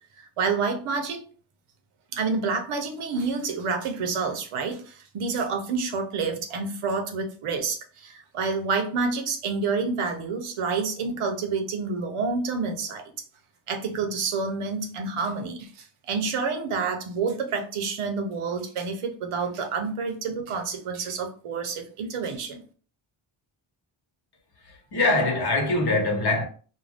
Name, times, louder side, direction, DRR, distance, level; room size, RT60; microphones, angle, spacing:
voice 1, 0.2-1.2 2.1-13.0 13.7-22.6, right 4 dB, 90° right, 0.8 m, -28 dB
voice 2, 24.6-26.4, left 2 dB, 50° left, 1.0 m, -23 dB
2.6 x 2.2 x 3.3 m
wide cardioid pair, 125°, 49 cm